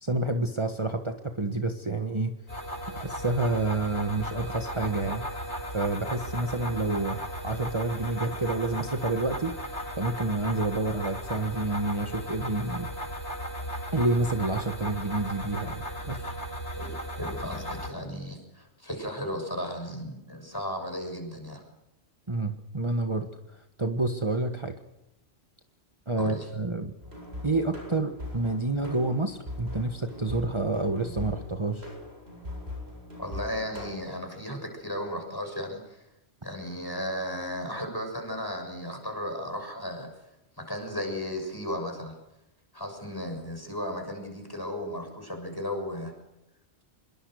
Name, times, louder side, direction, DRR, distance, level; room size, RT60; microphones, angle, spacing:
voice 1, 0.0-2.3 2.9-5.2 5.7-7.2 7.4-9.5 10.0-12.9 13.9-16.2 22.3-24.8 26.1-26.9 27.4-31.9, right 2 dB, 25° right, 6 dB, 1.6 m, -29 dB
sound 1, 2.5-17.9, equal, 85° left, 4.3 m, -36 dB
voice 2, 16.8-21.6 26.2-26.5 33.2-36.0 36.4-40.1 40.6-42.1 42.7-46.1, equal, 20° left, 3 dB, 6.9 m, -35 dB
sound 2, 27.0-33.9, left 1 dB, 70° right, 8.5 m, -40 dB
26.5 x 22.5 x 6.6 m, 0.90 s
omnidirectional pair, 1.1 m